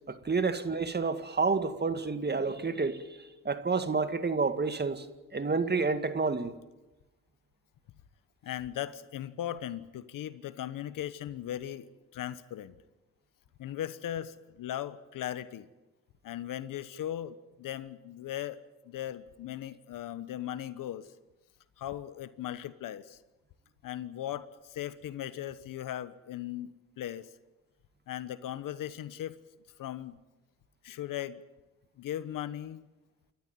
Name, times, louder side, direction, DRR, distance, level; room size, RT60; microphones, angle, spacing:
voice 1, 0.1-3.1 3.4-5.1 5.3-6.5, right 4 dB, 30° right, 2.2 m, -29 dB
voice 2, 8.4-11.9 12.1-12.8 13.6-15.7 16.2-18.6 18.8-21.1 21.8-23.2 23.8-27.3 28.1-29.4 29.8-30.2 30.8-31.4 32.0-32.9, left 12 dB, 85° left, 1.2 m, -38 dB
28.5 x 14.0 x 9.2 m
cardioid pair, 70°, 32 cm